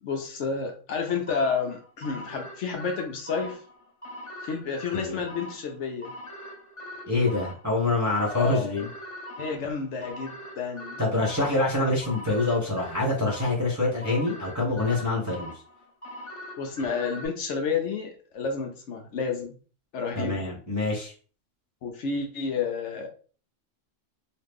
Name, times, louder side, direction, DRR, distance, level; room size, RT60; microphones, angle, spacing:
voice 1, 0.0-3.6 4.4-6.1 8.3-8.9 9.4-11.0 16.6-19.5 19.9-20.5 21.8-23.1, left 5 dB, 70° left, 0.9 m, -30 dB
sound 1, 1.3-17.3, equal, 25° left, 1.3 m, -42 dB
voice 2, 7.0-8.8 11.0-15.5 20.2-21.1, left 2 dB, 15° right, 0.9 m, -25 dB
3.0 x 2.4 x 3.5 m
omnidirectional pair, 1.3 m